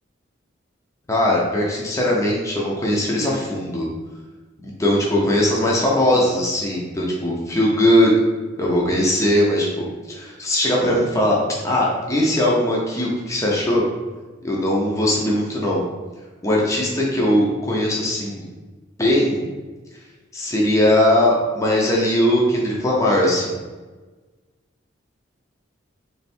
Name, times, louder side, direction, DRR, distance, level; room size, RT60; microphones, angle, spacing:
voice 1, 1.1-3.9 4.6-8.1 8.6-11.4 11.6-13.8 14.4-15.9 16.4-18.4 19.0-19.5 20.3-23.6, left 1 dB, 15° left, -3 dB, 0.7 m, -20 dB
3.6 x 3.4 x 4.3 m, 1.3 s
head